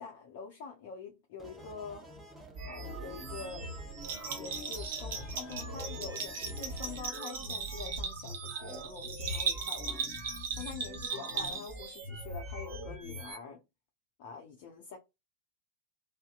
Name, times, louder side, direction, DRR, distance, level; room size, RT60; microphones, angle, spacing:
voice 1, 0.0-2.0 2.6-3.8 4.1-10.0 10.6-13.6 14.2-15.0, left 6 dB, 45° left, 0.5 m, -45 dB
sound 1, 1.4-7.0, right 1 dB, 10° right, 0.8 m, -51 dB
sound 2, 2.5-13.4, right 1 dB, 40° right, 1.3 m, -43 dB
Bell, 4.0-11.9, right 5 dB, 55° right, 0.6 m, -37 dB
2.7 x 2.0 x 2.2 m
figure-of-eight pair, 90°, 0 cm